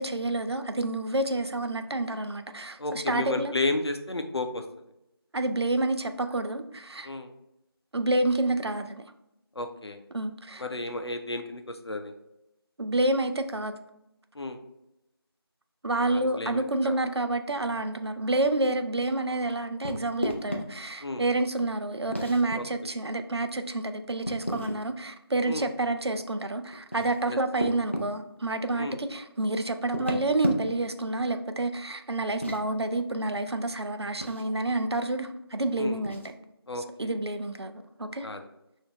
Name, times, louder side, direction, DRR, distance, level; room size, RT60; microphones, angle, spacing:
voice 1, 0.0-3.5 5.3-7.1 7.9-9.0 10.1-10.6 12.8-13.7 15.8-36.2 37.0-37.7 38.0-38.3, right 2 dB, 80° right, 8 dB, 0.5 m, -29 dB
voice 2, 2.8-4.6 7.0-7.3 9.5-10.0 10.6-12.1 14.3-14.6 16.1-17.0 21.0-21.2 22.6-22.7 25.4-25.7 27.3-27.4 28.7-29.0 35.8-36.0 36.7-37.1 38.2-38.4, left 2 dB, 80° left, 6 dB, 0.7 m, -32 dB
sound 1, 19.8-20.6 22.1-22.6 24.2-24.8 26.7-28.1 29.8-30.9 32.2-32.6 34.2-34.5 36.0-36.3, equal, 30° left, 0.4 m, -32 dB
5.6 x 2.7 x 2.9 m, 0.88 s
figure-of-eight pair, 175°, 13 cm